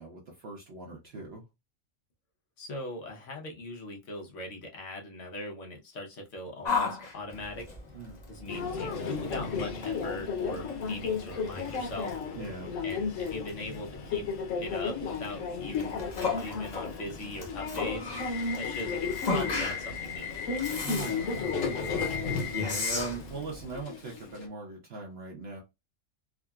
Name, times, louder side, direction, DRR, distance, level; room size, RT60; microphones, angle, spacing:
voice 1, 0.0-1.4 7.9-8.2 12.3-12.7 20.8-25.6, right 3 dB, 55° right, 0.9 m, -41 dB
voice 2, 2.6-7.7 8.3-12.1 12.8-14.3 14.6-18.1 18.5-20.4, left 2 dB, 70° left, 1.2 m, -40 dB
Yell, 6.6-23.8, left 4 dB, 40° left, 0.7 m, -37 dB
Subway metro underground, 8.5-24.5, left 5 dB, 90° left, 1.1 m, -34 dB
3.7 x 2.1 x 2.3 m
omnidirectional pair, 1.3 m